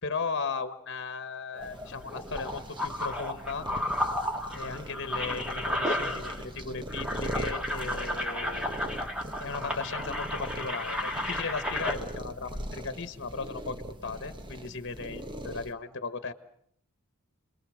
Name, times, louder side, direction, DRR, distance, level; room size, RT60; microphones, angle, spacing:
voice 1, 0.0-3.7 4.5-8.7 9.4-16.3, left 4 dB, 55° left, 10 dB, 1.5 m, -36 dB
sound 1, 1.5-6.6 6.9-12.0, left 1 dB, 5° right, 2.3 m, -33 dB
sound 2, 1.6-15.7, right 1 dB, 20° right, 1.2 m, -40 dB
29.5 x 21.5 x 6.4 m, 0.68 s
head